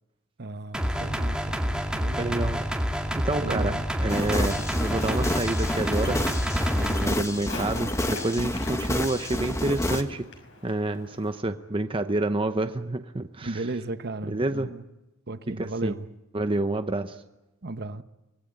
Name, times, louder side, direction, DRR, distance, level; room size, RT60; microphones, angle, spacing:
voice 1, 0.4-2.6 3.4-3.9 13.4-14.8 15.3-16.1 17.6-18.0, right 2 dB, 50° right, 1.0 m, -35 dB
sound 1, 0.7-7.1, equal, 5° right, 2.1 m, -28 dB
voice 2, 2.2-2.7 3.1-6.3 6.7-10.3 10.6-13.6 14.2-14.7 15.6-15.9 16.3-17.2, right 2 dB, 25° right, 0.8 m, -28 dB
Walk footsteps, 4.0-11.4, left 3 dB, 60° left, 5.8 m, -45 dB
sound 2, 4.1-10.0, left 1 dB, 15° left, 1.5 m, -29 dB
25.0 x 19.5 x 9.0 m
head